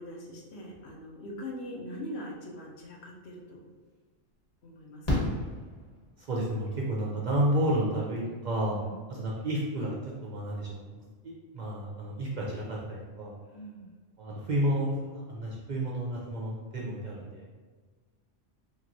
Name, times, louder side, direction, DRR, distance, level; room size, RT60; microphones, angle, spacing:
voice 1, 0.0-3.7 4.6-5.4 8.7-8.9 13.5-13.9, equal, 65° left, -1 dB, 0.9 m, -42 dB
Fireworks, 3.4-3.5 5.0-6.4 8.1-8.2 8.4-8.5, left 1 dB, 35° left, 1.1 m, -31 dB
voice 2, 6.2-8.8 9.1-13.4 14.2-17.5, right 1 dB, 60° right, -4 dB, 0.4 m, -31 dB
3.3 x 2.9 x 2.5 m, 1.4 s
omnidirectional pair, 1.3 m